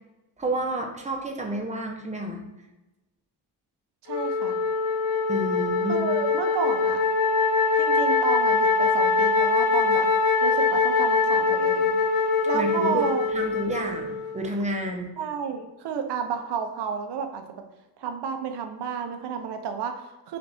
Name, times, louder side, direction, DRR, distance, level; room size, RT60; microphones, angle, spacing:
voice 1, 0.4-2.4 5.3-6.1 12.5-13.0 13.3-15.1, right 1 dB, 15° right, 2 dB, 0.6 m, -30 dB
voice 2, 4.0-4.6 5.9-7.0 7.8-10.1 10.4-12.0 12.5-13.2 15.2-17.4 18.0-20.4, right 7 dB, 70° right, 6 dB, 0.7 m, -31 dB
Wind instrument woodwind instrument, 4.1-14.5, left 4 dB, 55° left, 0.6 m, -23 dB
3.9 x 2.5 x 3.4 m, 1.0 s
cardioid pair, 100°, 42 cm